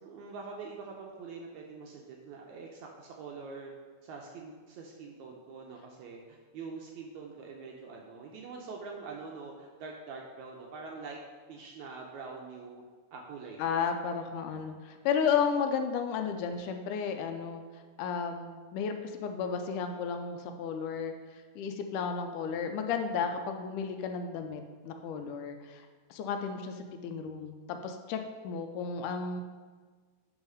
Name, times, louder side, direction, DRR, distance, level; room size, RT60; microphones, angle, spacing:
voice 1, 0.0-3.7 4.0-11.2 11.5-12.8 13.1-13.8, right 4 dB, 75° right, 0 dB, 1.8 m, -44 dB
voice 2, 13.6-17.6 18.0-21.1 21.6-25.8 26.1-29.4, left 6 dB, 80° left, 6 dB, 2.0 m, -33 dB
9.8 x 3.5 x 5.5 m, 1.5 s
omnidirectional pair, 3.8 m